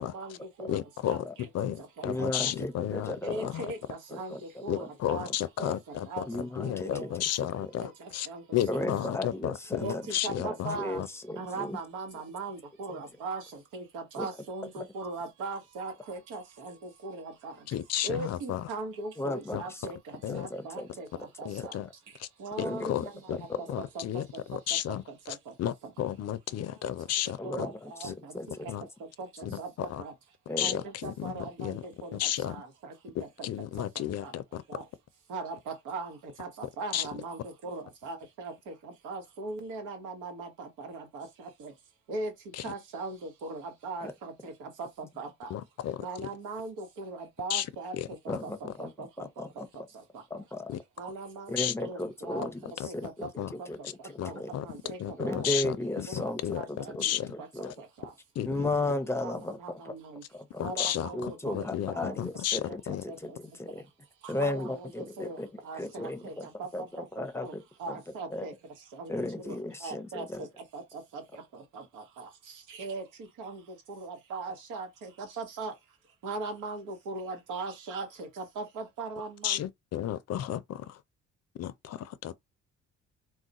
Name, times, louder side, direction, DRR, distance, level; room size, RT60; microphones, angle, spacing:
voice 1, 0.0-0.8 1.1-1.2 1.6-1.7 2.0-2.3 3.2-5.3 5.6-7.1 7.8-8.4 8.7-8.9 9.8-10.0 10.2-11.0 11.4-17.5 18.0-20.0 20.3-21.1 21.4-21.7 22.4-23.1 23.6-24.2 25.3-25.4 27.4-28.3 28.6-28.7 29.2-29.7 30.0-30.1 30.6-32.2 32.4-32.9 34.2-34.3 34.7-34.8 35.3-41.7 42.1-42.3 42.6-45.5 46.0-48.2 48.4-49.5 51.0-51.5 51.8-52.5 52.8-53.3 53.6-53.7 54.2-55.5 56.1-56.9 57.4-57.5 57.8-58.1 59.2-60.2 60.6-61.7 61.9-62.1 62.7-63.4 64.2-66.7 67.0-67.5 67.8-68.5 68.9-69.1 69.4-69.5 69.8-70.5 70.7-70.8 71.1-72.3 72.7-73.0 73.4-73.6 73.9-75.7 76.2-79.6, right 3 dB, 90° right, 1.0 m, -39 dB
voice 2, 0.7-3.7 4.7-8.3 8.5-11.1 17.7-18.7 19.5-19.6 20.2-20.5 21.4-21.9 22.2-22.3 22.6-23.4 23.7-27.7 28.0-28.1 28.7-28.8 29.4-30.0 30.6-31.8 32.1-32.6 33.1-34.6 36.9-37.1 42.6-42.7 45.5-46.3 47.5-47.7 47.9-48.4 50.7-50.8 51.6-51.7 52.8-52.9 53.2-53.5 54.2-54.7 55.0-57.3 57.6-57.7 58.4-58.7 60.6-63.0 79.4-81.0 81.6-82.4, left 11 dB, 55° left, 0.5 m, -33 dB
voice 3, 2.0-3.5 4.1-4.4 5.6-5.7 6.3-7.1 8.7-10.0 10.4-11.8 14.2-14.3 14.8-14.9 19.2-19.6 20.3-20.9 21.6-21.7 22.6-22.9 23.5-23.6 27.4-28.7 30.5-30.8 44.0-44.1 48.3-48.9 49.2-49.7 50.3-50.7 51.5-52.6 52.9-53.3 53.5-54.5 55.2-56.4 56.7-57.0 57.3-57.7 58.5-59.9 60.3-60.6 61.1-63.0 63.2-63.3 63.6-63.8 64.3-65.5 65.8-66.5 66.7-67.6 68.3-68.4 69.1-70.4, left 2 dB, 10° left, 0.6 m, -35 dB
2.4 x 2.1 x 3.9 m
cardioid pair, 90°, 30 cm